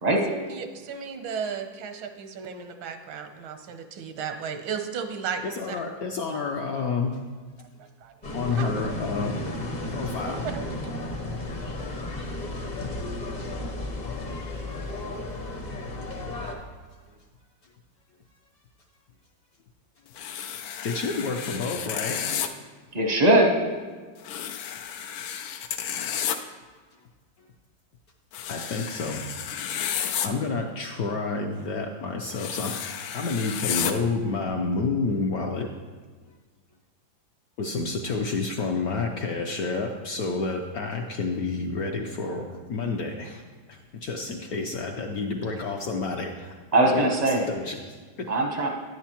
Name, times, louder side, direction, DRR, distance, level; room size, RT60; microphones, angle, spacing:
voice 1, 0.3-5.8 7.8-8.7 10.3-10.9, right 6 dB, 85° right, 7 dB, 1.5 m, -35 dB
voice 2, 5.4-7.2 8.3-9.3 9.9-10.5 20.8-22.2 28.5-29.3 30.2-35.8 37.6-46.5 46.9-48.3, left 4 dB, 70° left, 2 dB, 0.9 m, -29 dB
sound 1, 8.2-16.6, left 2 dB, 40° left, 0.6 m, -33 dB
sound 2, 20.2-22.5 24.2-26.4 28.3-30.3 32.3-33.9, left 9 dB, 90° left, 1.4 m, -32 dB
voice 3, 22.9-23.6 46.7-47.5 48.3-48.7, right 1 dB, 50° right, 1 dB, 0.5 m, -20 dB
10.5 x 9.3 x 2.9 m, 1.4 s
omnidirectional pair, 2.1 m